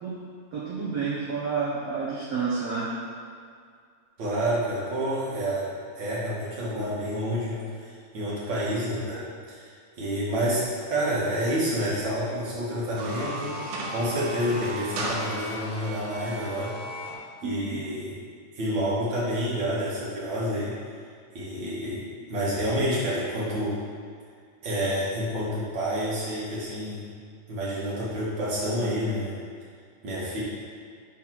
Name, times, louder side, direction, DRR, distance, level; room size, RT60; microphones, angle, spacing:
voice 1, 0.5-2.9 17.4-17.8, right 5 dB, 60° right, -9 dB, 2.0 m, -30 dB
voice 2, 4.2-5.7 6.0-9.7 10.0-10.6 10.9-13.6 13.9-16.7 17.4-18.2 18.5-20.7 21.3-23.8 24.6-27.0 27.5-29.4 30.0-30.4, equal, 40° right, -8 dB, 2.2 m, -29 dB
sound 1, 12.8-17.2, right 1 dB, 80° right, 2.4 m, -35 dB
5.7 x 4.2 x 6.1 m, 2.1 s
omnidirectional pair, 3.6 m